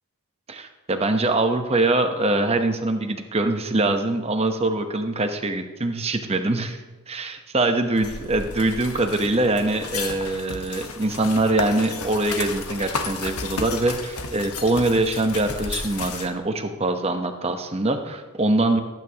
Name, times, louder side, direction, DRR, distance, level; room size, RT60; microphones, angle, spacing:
voice 1, 0.5-6.8 7.1-18.8, right 2 dB, 25° right, 6 dB, 0.9 m, -23 dB
sound 1, 7.9-16.3, left 4 dB, 80° left, 1.2 m, -33 dB
18.5 x 9.1 x 2.9 m, 1.2 s
head